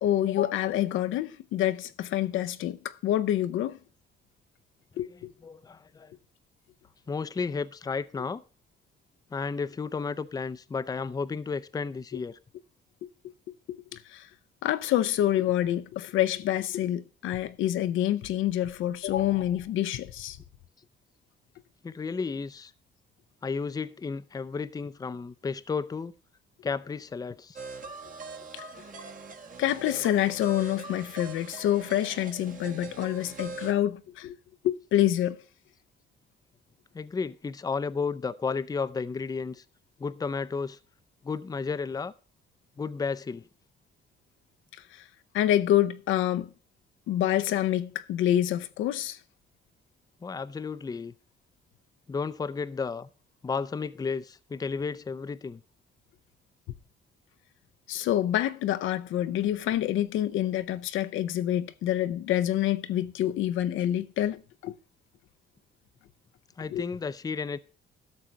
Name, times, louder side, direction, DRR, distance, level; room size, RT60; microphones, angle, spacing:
voice 1, 0.0-3.8 5.0-5.3 13.7-13.8 14.1-14.3 14.6-20.4 28.5-28.6 29.6-34.4 34.6-35.4 44.9-45.0 45.3-46.5 47.1-49.2 57.9-64.8 66.7-66.9, left 12 dB, 85° left, 0.6 m, -27 dB
voice 2, 5.4-6.1 7.1-8.4 9.3-12.4 21.8-22.7 23.4-26.1 26.6-27.6 36.9-39.6 40.0-40.8 41.2-42.1 42.8-43.4 50.2-51.1 52.1-53.1 53.4-55.6 66.6-67.6, left 5 dB, 20° left, 0.5 m, -33 dB
sound 1, 27.6-33.7, right 4 dB, 40° right, 1.4 m, -42 dB
12.5 x 6.4 x 4.5 m
cardioid pair, 90°, 20 cm